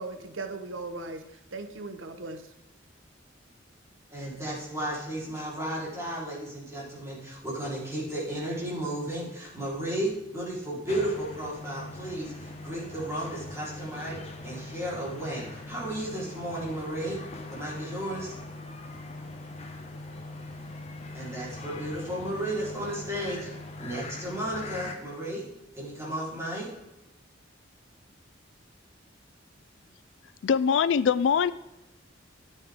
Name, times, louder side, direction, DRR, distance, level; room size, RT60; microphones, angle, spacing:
voice 1, 0.0-2.5, right 3 dB, 85° right, 8 dB, 0.9 m, -38 dB
voice 2, 4.1-17.2 17.5-18.3 21.1-23.5 23.8-25.4 25.7-26.7, right 1 dB, 15° right, -6 dB, 4.0 m, -34 dB
sound 1, 10.9-25.0, left 2 dB, 35° left, 1.2 m, -41 dB
voice 3, 30.4-31.5, left 7 dB, 70° left, 16 dB, 0.3 m, -22 dB
10.0 x 9.0 x 3.6 m, 0.95 s
head